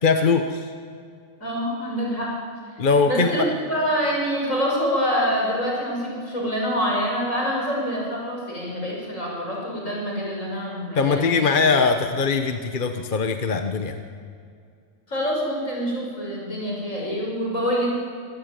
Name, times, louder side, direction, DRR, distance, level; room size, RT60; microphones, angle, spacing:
voice 1, 0.0-0.7 2.8-3.5 10.9-14.0, left 4 dB, 40° left, 7 dB, 1.2 m, -21 dB
voice 2, 1.4-2.3 3.0-11.6 15.1-17.9, equal, 75° left, -2 dB, 6.8 m, -26 dB
26.0 x 15.0 x 9.1 m, 2.4 s
omnidirectional pair, 1.4 m